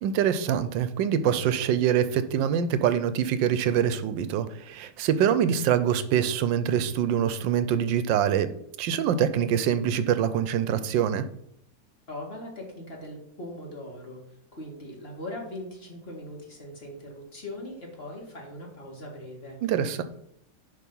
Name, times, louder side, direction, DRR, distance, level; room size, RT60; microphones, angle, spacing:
voice 1, 0.0-8.5 8.8-11.2 19.6-20.0, right 9 dB, 85° right, 12 dB, 1.3 m, -24 dB
voice 2, 12.1-19.6, left 1 dB, 35° left, -1 dB, 1.9 m, -40 dB
10.0 x 3.6 x 5.4 m, 0.72 s
omnidirectional pair, 2.0 m